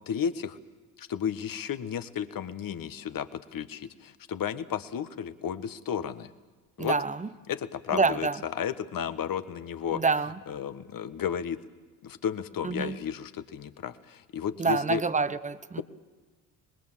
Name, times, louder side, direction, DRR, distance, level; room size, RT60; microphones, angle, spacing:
voice 1, 0.1-0.6 1.0-6.3 6.8-6.9 7.5-10.0 10.5-11.6 12.0-15.0, left 8 dB, 45° left, 12 dB, 1.5 m, -33 dB
voice 2, 6.8-7.3 7.9-8.4 9.9-10.3 12.6-13.0 14.6-15.8, right 4 dB, 15° right, 14 dB, 1.0 m, -27 dB
25.0 x 20.0 x 7.5 m, 1.3 s
hypercardioid pair, 70°, 47 cm